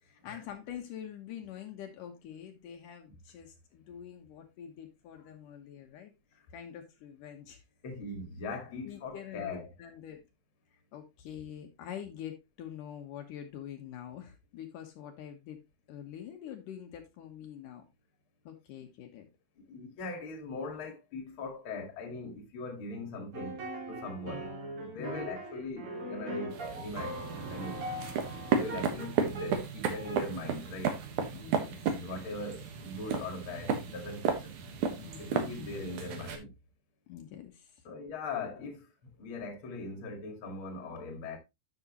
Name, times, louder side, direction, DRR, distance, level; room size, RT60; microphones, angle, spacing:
voice 1, 0.0-6.1 6.5-7.6 8.8-10.2 10.9-15.6 15.9-17.8 18.4-19.3 24.2-24.5 24.9-25.4 31.3-32.0 35.0-35.7 37.1-37.8, left 9 dB, 75° left, 2.7 m, -45 dB
voice 2, 7.8-9.7 19.6-23.6 23.9-27.8 28.6-31.0 31.9-34.5 35.2-36.5 37.8-41.4, left 3 dB, 45° left, 2.4 m, -41 dB
sound 1, 23.3-29.6 29.9-30.3, right 1 dB, 45° right, 3.0 m, -40 dB
sound 2, 26.5-36.4, right 6 dB, 65° right, 2.7 m, -34 dB
11.0 x 6.4 x 3.0 m
omnidirectional pair, 3.9 m